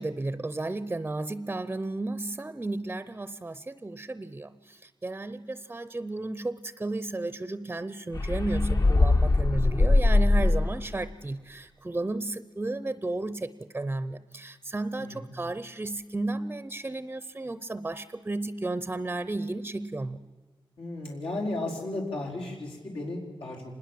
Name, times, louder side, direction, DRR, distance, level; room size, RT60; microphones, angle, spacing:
voice 1, 0.0-20.2, right 2 dB, 15° right, 15 dB, 0.6 m, -33 dB
sound 1, 8.1-10.9, left 2 dB, 35° left, 0.8 m, -22 dB
voice 2, 20.8-23.6, left 2 dB, 85° left, -2 dB, 4.9 m, -34 dB
25.5 x 20.5 x 7.5 m, 1.4 s
wide cardioid pair, 125°, 9 cm